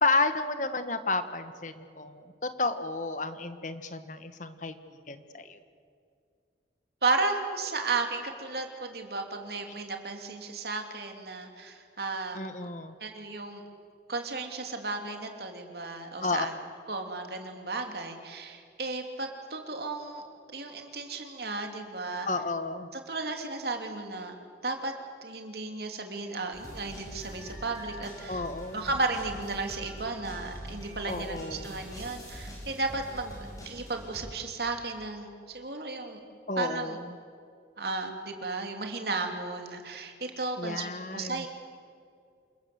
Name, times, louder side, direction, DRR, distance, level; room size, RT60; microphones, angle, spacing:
voice 1, 0.0-4.7 5.1-5.6 12.3-12.9 16.2-16.5 22.2-22.9 28.3-28.9 31.0-31.8 36.5-37.2 40.6-41.5, left 3 dB, 45° left, 10 dB, 1.3 m, -31 dB
voice 2, 7.0-12.4 13.0-13.6 14.1-16.5 16.9-20.2 20.5-22.3 23.1-24.3 24.6-24.9 25.2-28.4 28.7-33.3 33.6-36.2 36.6-37.0 37.8-41.5, right 3 dB, 60° right, 4 dB, 2.9 m, -34 dB
sound 1, 26.5-34.3, equal, 20° left, 6.4 m, -44 dB
28.0 x 21.0 x 8.0 m, 2.4 s
head